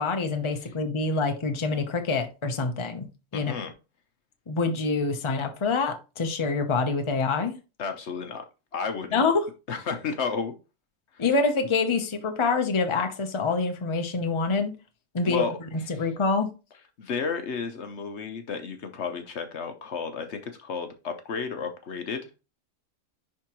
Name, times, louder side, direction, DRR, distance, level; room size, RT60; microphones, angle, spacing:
voice 1, 0.0-3.1 3.3-3.5 4.5-7.5 9.1-9.5 11.2-14.7 15.1-15.4 15.9-16.5, left 4 dB, 25° left, 0.8 m, -26 dB
voice 2, 3.3-3.7 7.8-8.4 8.7-9.2 9.7-10.6 11.1-11.2 15.2-15.5 15.9-16.1 17.0-22.3, left 5 dB, 60° left, 1.0 m, -32 dB
10.5 x 3.7 x 3.0 m
omnidirectional pair, 1.4 m